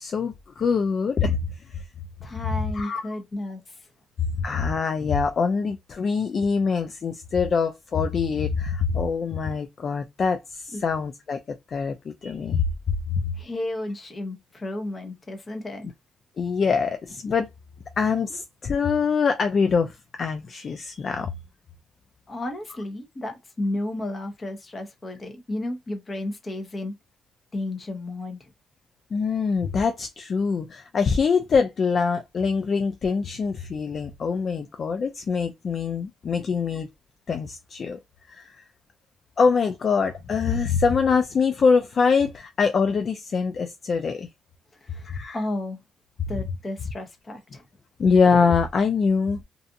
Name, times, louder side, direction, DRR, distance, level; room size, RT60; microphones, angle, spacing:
voice 1, 0.0-1.8 2.7-3.2 4.4-12.7 13.1-13.2 16.4-17.5 18.0-21.3 29.1-36.9 37.3-38.0 38.3-38.6 39.4-44.3 45.0-45.4 48.0-49.4, left 5 dB, 50° left, 0.3 m, -24 dB
voice 2, 2.2-3.6 10.7-10.8 13.4-15.9 22.3-26.9 27.5-28.5 36.4-36.5 44.8-45.1 45.3-45.8 46.3-47.6, left 1 dB, 30° left, 0.9 m, -32 dB
2.6 x 2.4 x 2.5 m
cardioid pair, 90°, 0 cm